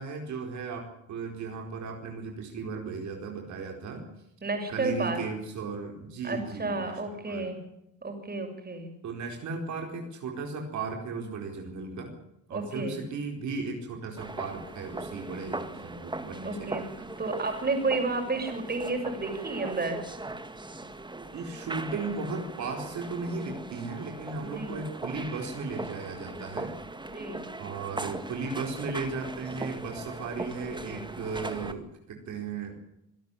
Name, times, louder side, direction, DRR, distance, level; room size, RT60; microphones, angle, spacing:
voice 1, 0.0-4.1 4.7-7.5 9.0-12.2 12.5-17.1 21.3-26.7 27.6-32.7, right 4 dB, 70° right, 2 dB, 4.6 m, -36 dB
voice 2, 4.4-5.2 6.2-7.6 8.0-8.9 12.5-13.0 16.4-16.8 17.2-20.0 24.4-24.8 27.1-27.4, right 3 dB, 30° right, 5 dB, 6.9 m, -31 dB
sound 1, 14.2-31.7, right 2 dB, 15° right, 2.1 m, -39 dB
25.5 x 12.5 x 9.9 m, 0.83 s
cardioid pair, 90°, 30 cm